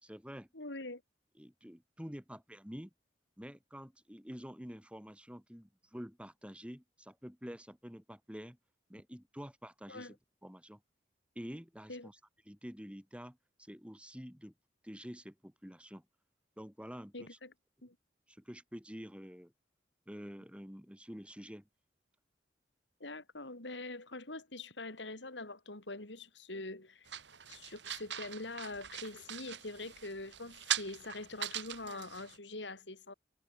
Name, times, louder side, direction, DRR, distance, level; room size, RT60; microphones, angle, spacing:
voice 1, 0.0-0.5 1.4-2.9 3.4-8.6 8.9-10.8 11.4-12.2 12.5-14.5 14.8-16.0 16.6-17.4 18.3-19.5 20.1-21.7, equal, 5° right, 5.5 m, -48 dB
voice 2, 0.5-1.0 9.9-10.1 11.9-12.1 17.1-17.5 17.8-18.0 23.0-27.1 27.5-33.1, left 2 dB, 75° left, 4.0 m, -44 dB
sound 1, 27.1-32.4, right 10 dB, 75° right, 3.3 m, -41 dB
head